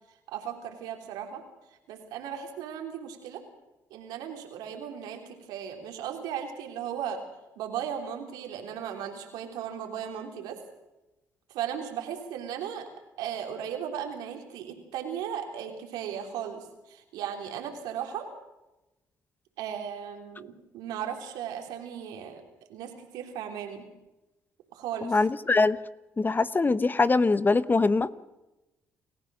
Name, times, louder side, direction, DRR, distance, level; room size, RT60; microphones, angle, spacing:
voice 1, 0.3-1.4 1.9-3.4 3.9-7.2 7.6-10.6 11.5-12.9 13.2-18.3 19.6-22.4 22.7-23.9 24.7-25.2, right 9 dB, 85° right, 3 dB, 3.5 m, -36 dB
voice 2, 25.0-25.8 26.2-28.1, left 3 dB, 30° left, 15 dB, 1.0 m, -23 dB
28.0 x 15.0 x 6.4 m, 0.98 s
supercardioid pair, 65°, 7 cm